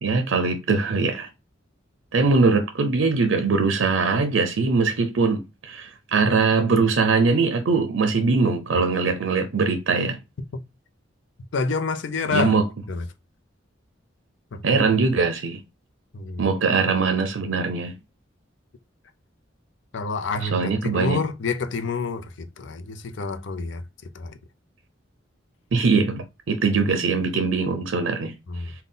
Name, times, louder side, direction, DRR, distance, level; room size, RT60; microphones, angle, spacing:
voice 1, 0.0-1.3 2.1-10.2 12.3-12.6 14.6-15.6 16.4-17.9 20.5-21.2 25.7-28.3, right 4 dB, 90° right, 0.5 m, -21 dB
voice 2, 11.5-12.6 12.9-13.1 14.5-14.8 16.1-16.5 19.9-24.4 28.5-28.7, left 4 dB, 70° left, 0.5 m, -28 dB
3.8 x 2.2 x 3.7 m
head